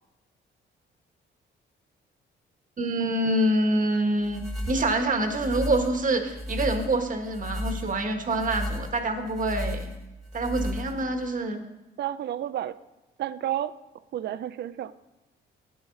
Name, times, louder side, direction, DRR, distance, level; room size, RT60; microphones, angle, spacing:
voice 1, 2.8-9.9 10.3-11.6, right 1 dB, 40° right, 6 dB, 1.5 m, -26 dB
sound 1, 4.2-11.3, left 1 dB, ahead, 1.6 m, -34 dB
voice 2, 12.0-12.8 13.2-13.7 14.1-14.9, right 11 dB, 60° right, 15 dB, 0.5 m, -31 dB
13.0 x 8.9 x 3.9 m, 1.1 s
cardioid pair, 90°, 20 cm